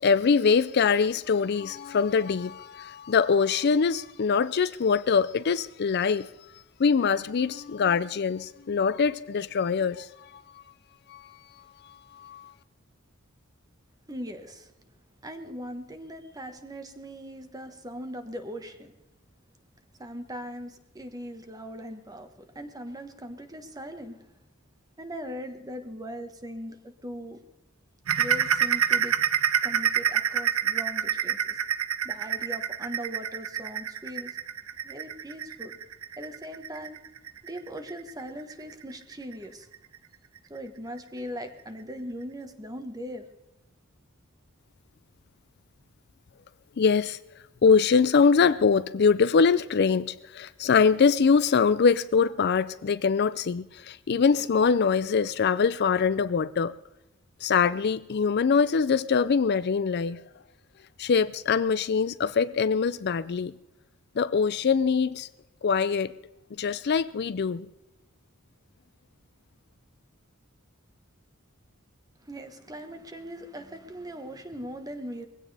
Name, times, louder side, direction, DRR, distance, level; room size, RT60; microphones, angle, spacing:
voice 1, 0.0-6.3 6.8-10.1 11.1-11.4 12.1-12.5 46.8-47.2 47.6-56.7 57.4-60.2 61.0-63.5 64.2-65.3 65.6-66.2 66.6-67.7, left 5 dB, 50° left, 0.4 m, -23 dB
voice 2, 14.1-14.7 15.2-18.9 20.0-24.3 25.0-27.4 28.2-29.2 29.6-31.6 32.0-34.4 34.8-35.8 36.2-37.0 37.4-39.7 40.5-43.2 72.2-75.3, equal, 15° right, 1.4 m, -40 dB
sound 1, 28.1-39.3 39.7-40.0 40.4-40.5 41.0-41.1, right 9 dB, 75° right, 0.7 m, -27 dB
21.0 x 16.5 x 3.4 m
head